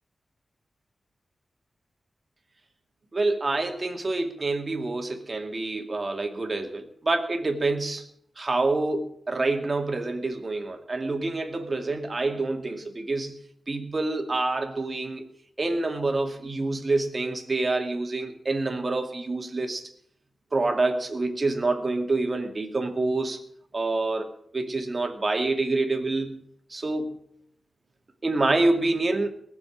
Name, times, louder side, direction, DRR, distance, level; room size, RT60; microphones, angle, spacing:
voice 1, 3.1-8.0 8.4-13.3 13.7-15.2 15.6-19.9 20.5-23.4 23.7-26.4 26.7-27.2 28.2-29.3, right 2 dB, 30° right, 4 dB, 2.4 m, -27 dB
20.0 x 7.2 x 10.0 m, 0.65 s
wide cardioid pair, 170°, 0 cm